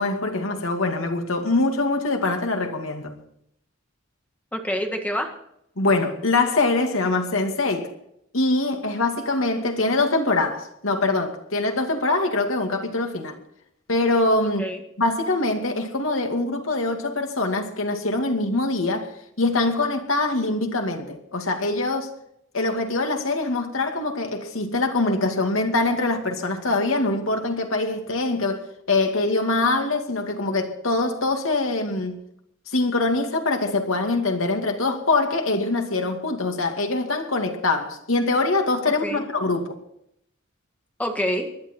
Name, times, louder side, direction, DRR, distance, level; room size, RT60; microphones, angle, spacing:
voice 1, 0.0-3.2 5.8-7.9 8.3-13.4 13.9-14.6 15.0-22.1 22.5-32.2 32.7-39.8, left 2 dB, 85° left, 2.4 m, -23 dB
voice 2, 4.5-5.3 14.4-14.8 38.9-39.2 41.0-41.5, equal, 5° left, 1.8 m, -27 dB
19.5 x 12.0 x 4.6 m
head